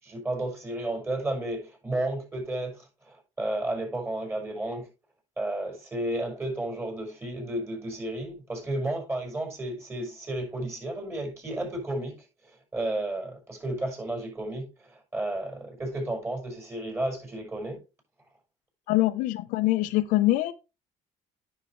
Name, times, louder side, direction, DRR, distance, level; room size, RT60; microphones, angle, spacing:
voice 1, 0.0-4.9 5.4-12.2 12.4-17.8, right 1 dB, 20° right, 6.1 m, -32 dB
voice 2, 18.9-20.5, left 17 dB, 85° left, 0.8 m, -24 dB
9.8 x 6.6 x 3.2 m
cardioid pair, 95°, 13 cm